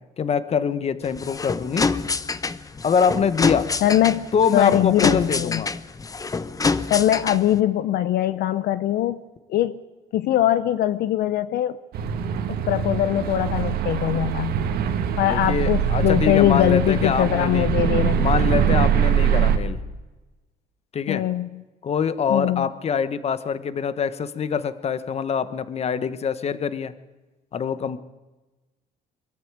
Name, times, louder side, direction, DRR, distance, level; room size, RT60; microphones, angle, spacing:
voice 1, 0.2-1.9 2.8-3.7 4.3-5.7 15.3-17.7 18.2-19.8 20.9-21.2 21.8-26.9 27.5-28.0, left 6 dB, 40° left, 14 dB, 1.1 m, -24 dB
sound 1, 1.0-7.6, left 4 dB, 20° left, 0.8 m, -26 dB
voice 2, 3.8-4.3 4.5-5.6 6.9-9.2 9.5-9.8 10.1-11.8 12.5-14.6 15.2-18.4 21.1-21.5 22.3-22.7, left 12 dB, 70° left, 13 dB, 0.7 m, -21 dB
sound 2, 11.9-19.6, right 8 dB, 70° right, 1.8 m, -23 dB
23.0 x 13.5 x 8.8 m, 1.2 s
cardioid pair, 110°, 17 cm